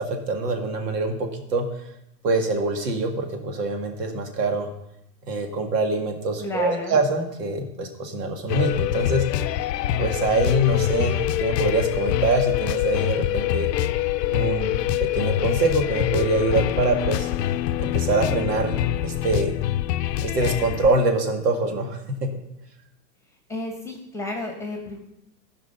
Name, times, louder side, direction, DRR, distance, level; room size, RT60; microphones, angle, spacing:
voice 1, 0.0-1.7 2.2-4.7 5.3-9.2 10.0-13.7 14.3-14.8 15.0-17.3 17.8-18.8 19.0-19.5 20.2-22.3, right 2 dB, 75° right, 4 dB, 2.0 m, -24 dB
voice 2, 6.4-7.0 23.5-25.0, left 2 dB, 5° left, 2 dB, 1.2 m, -31 dB
sound 1, 8.5-21.0, left 13 dB, 85° left, 0.7 m, -25 dB
14.0 x 5.2 x 5.6 m, 0.83 s
supercardioid pair, 145°, 48 cm